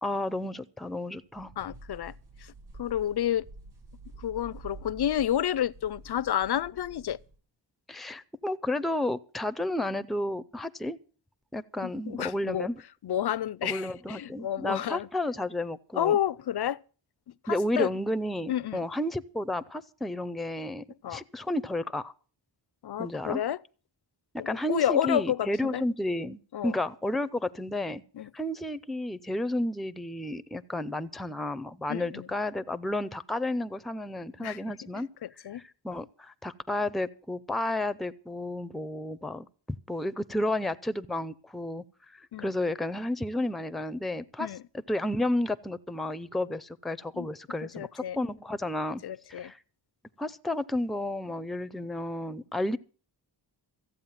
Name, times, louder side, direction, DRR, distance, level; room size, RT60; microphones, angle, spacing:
voice 1, 0.0-1.5 7.9-11.0 11.5-12.8 13.6-16.2 17.5-20.8 21.1-22.1 23.0-23.4 24.5-28.0 28.3-35.1 35.5-39.5 39.9-41.8 42.1-49.0 49.3-49.6 50.2-52.8, left 1 dB, ahead, 0.6 m, -32 dB
sound 1, 1.4-7.4, right 3 dB, 60° right, 6.5 m, -48 dB
voice 2, 1.6-2.1 2.4-2.5 2.8-3.5 4.2-7.2 11.8-12.7 13.0-15.1 16.0-16.8 17.4-17.9 18.5-18.8 21.0-21.2 22.8-23.6 24.4-25.8 26.5-26.8 28.1-28.3 31.9-32.3 34.4-34.6 35.2-35.6 42.3-42.5 44.4-44.6 47.1-47.3 47.6-48.2 49.0-49.5, left 10 dB, 60° left, 0.6 m, -30 dB
14.5 x 8.5 x 7.4 m
wide cardioid pair, 80°, 45 cm